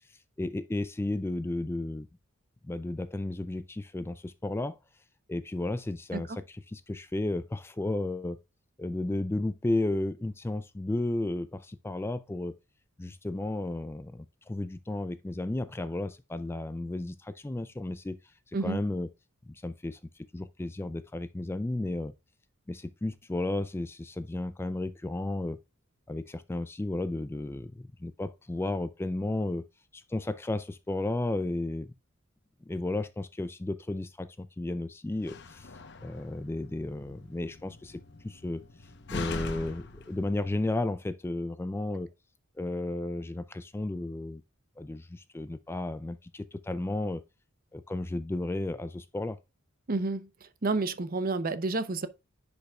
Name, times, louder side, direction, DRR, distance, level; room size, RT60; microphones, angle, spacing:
voice 1, 0.4-2.1 2.6-4.8 5.3-8.4 8.8-12.6 13.0-18.2 18.5-19.1 19.5-20.0 20.3-22.1 22.7-25.6 26.1-29.7 29.9-31.9 32.6-35.7 36.0-38.6 39.1-42.1 42.6-44.4 44.8-47.2 47.7-49.4, left 2 dB, 10° left, 0.3 m, -33 dB
Slam, 35.1-40.7, left 3 dB, 55° left, 0.9 m, -42 dB
voice 2, 49.9-50.3 50.6-52.1, right 3 dB, 45° right, 0.7 m, -30 dB
10.5 x 5.2 x 2.3 m
head